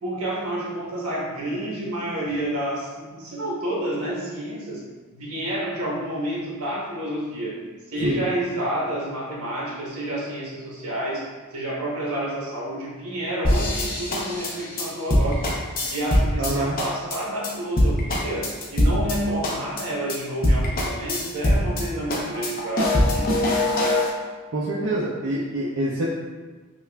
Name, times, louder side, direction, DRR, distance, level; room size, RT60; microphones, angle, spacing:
voice 1, 0.0-4.8 5.1-7.6 7.9-11.2 11.5-15.5 15.9-23.6, right 1 dB, 80° right, -5 dB, 1.1 m, -29 dB
sound 1, 13.4-16.5 16.8-17.2 17.4-17.5 17.8-19.2 19.4-19.8 20.1-20.2 20.4-21.8 22.1-24.1, left 1 dB, 40° left, 0.6 m, -22 dB
voice 2, 16.4-16.8 24.5-26.1, right 1 dB, 55° right, -5 dB, 0.4 m, -25 dB
5.4 x 2.4 x 2.2 m, 1.3 s
head